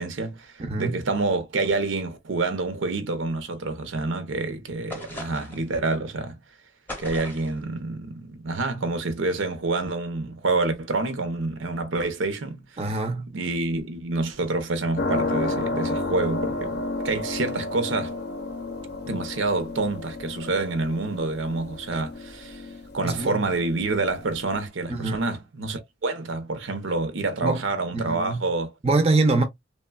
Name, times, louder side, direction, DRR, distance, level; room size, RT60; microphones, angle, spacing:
voice 1, 0.0-6.4 7.0-12.6 13.3-18.1 19.1-22.7 22.9-28.7, right 3 dB, 85° right, 0.6 m, -27 dB
voice 2, 0.6-1.0 12.8-13.3 23.0-23.4 24.9-25.3 27.4-27.6 27.9-28.4 28.8-29.4, right 3 dB, 30° right, 0.4 m, -24 dB
sound 1, 4.9-5.7 6.9-7.6, left 1 dB, 10° left, 0.7 m, -38 dB
sound 2, 15.0-24.6, left 2 dB, 55° left, 0.5 m, -32 dB
3.1 x 2.1 x 2.2 m
head